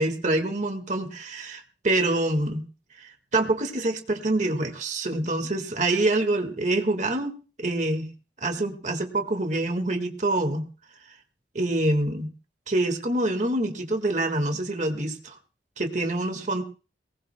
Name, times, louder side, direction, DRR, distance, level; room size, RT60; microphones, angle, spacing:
voice 1, 0.0-2.6 3.3-8.1 8.4-10.7 11.6-12.3 12.7-15.4 15.8-16.6, right 2 dB, 40° right, 6 dB, 1.8 m, -26 dB
22.0 x 19.0 x 2.2 m, 0.36 s
head